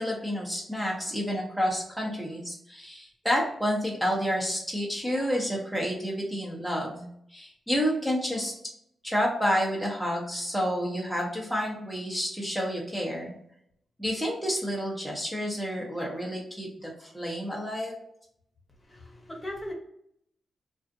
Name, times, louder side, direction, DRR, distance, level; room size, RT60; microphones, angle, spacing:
voice 1, 0.0-8.5 9.0-13.3 14.0-18.0, equal, 5° right, -3 dB, 0.8 m, -29 dB
voice 2, 18.9-19.7, left 1 dB, 25° left, -1 dB, 1.0 m, -38 dB
2.5 x 2.4 x 2.4 m, 0.71 s
cardioid pair, 60°, 0 cm